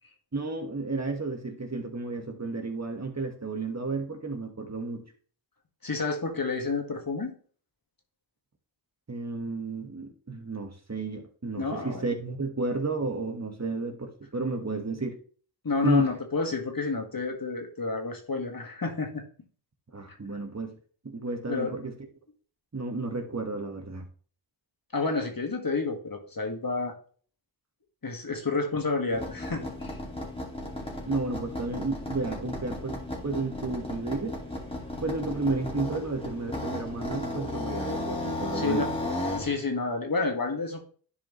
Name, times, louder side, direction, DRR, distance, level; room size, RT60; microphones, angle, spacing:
voice 1, 0.3-5.0 9.1-15.2 15.8-16.1 19.9-20.8 21.0-21.9 22.7-24.1 31.1-34.4 35.0-38.9, right 3 dB, 35° right, 4 dB, 1.5 m, -32 dB
voice 2, 5.8-7.3 11.6-12.1 15.6-19.2 21.5-21.7 24.9-27.0 28.0-30.0 38.5-38.9 39.4-40.8, left 3 dB, 45° left, 3 dB, 1.9 m, -30 dB
sound 1, 29.1-39.5, left 1 dB, 10° left, 2.3 m, -34 dB
11.0 x 4.8 x 3.1 m, 0.43 s
wide cardioid pair, 60°, 47 cm